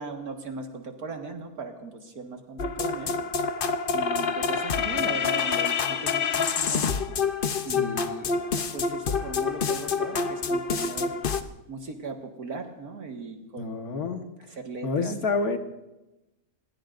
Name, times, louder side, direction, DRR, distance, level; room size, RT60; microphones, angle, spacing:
voice 1, 0.0-3.1 3.9-7.0 7.6-8.4 8.7-11.2 11.7-13.8 14.6-15.1, right 4 dB, 80° right, 3 dB, 2.3 m, -38 dB
sound 1, 2.6-11.4, left 5 dB, 45° left, 0.8 m, -27 dB
voice 2, 7.7-8.0 13.6-14.2 14.8-15.6, left 4 dB, 75° left, 5 dB, 1.9 m, -28 dB
26.0 x 21.0 x 2.6 m, 1.0 s
omnidirectional pair, 1.6 m